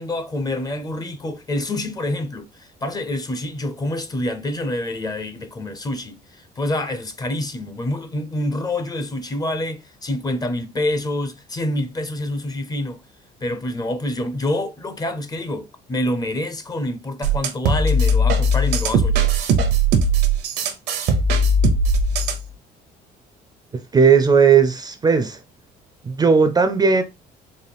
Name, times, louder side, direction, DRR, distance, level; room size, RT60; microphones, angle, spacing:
voice 1, 0.0-13.0 13.4-19.3, left 1 dB, 25° left, 0.6 m, -27 dB
sound 1, 17.2-22.5, right 1 dB, 75° right, 0.8 m, -19 dB
voice 2, 23.9-25.4 26.1-27.0, right 6 dB, 25° right, 0.4 m, -16 dB
4.0 x 2.2 x 3.4 m
cardioid pair, 110°, 17 cm